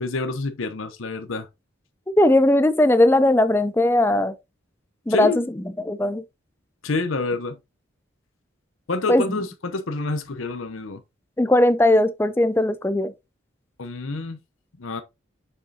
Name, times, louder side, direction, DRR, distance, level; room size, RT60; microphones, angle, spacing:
voice 1, 0.0-1.5 5.1-5.4 6.8-7.6 8.9-11.0 13.8-14.4 14.8-15.0, left 3 dB, 85° left, 0.8 m, -27 dB
voice 2, 2.2-4.3 5.1-6.2 9.1-9.4 11.4-13.1, left 1 dB, 10° left, 0.4 m, -19 dB
6.5 x 5.4 x 2.7 m
head